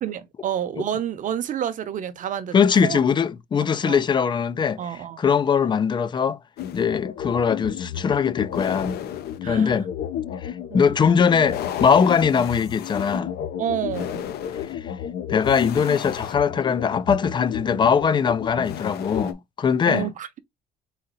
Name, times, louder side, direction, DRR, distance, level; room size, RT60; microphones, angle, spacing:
voice 1, 0.0-3.0 3.8-4.0 4.8-5.2 9.4-9.8 10.7-10.8 13.6-14.2 19.9-20.4, right 9 dB, 50° right, 0.7 m, -29 dB
voice 2, 2.5-6.4 6.7-9.0 9.5-9.9 10.4-13.3 14.7-14.9 15.3-20.1, left 6 dB, 25° left, 0.4 m, -21 dB
sound 1, 6.6-19.3, left 9 dB, 70° left, 0.7 m, -32 dB
4.1 x 2.6 x 4.0 m
cardioid pair, 110°, 17 cm